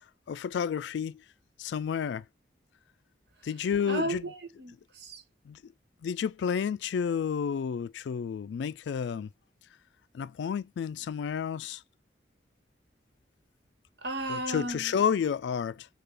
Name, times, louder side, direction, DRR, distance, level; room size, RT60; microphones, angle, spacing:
voice 1, 0.3-1.2 1.6-2.2 3.4-4.2 5.5-5.6 6.0-9.3 10.1-11.8 14.3-15.9, left 7 dB, 80° left, 0.3 m, -30 dB
voice 2, 3.9-5.2 14.0-14.9, right 2 dB, 70° right, 1.3 m, -34 dB
6.7 x 2.4 x 3.3 m
head